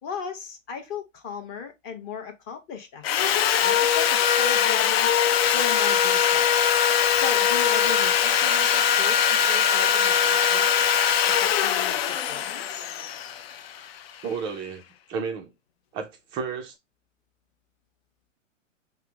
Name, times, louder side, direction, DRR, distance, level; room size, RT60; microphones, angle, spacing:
voice 1, 0.0-5.1 5.5-6.5 7.1-10.7 11.3-12.9, left 6 dB, 30° left, 1.0 m, -36 dB
Sawing, 3.0-14.1, left 8 dB, 50° left, 0.5 m, -21 dB
voice 2, 14.2-14.8 15.1-15.5 15.9-16.7, right 6 dB, 15° right, 0.4 m, -32 dB
5.7 x 2.0 x 3.5 m
hypercardioid pair, 125°, 39 cm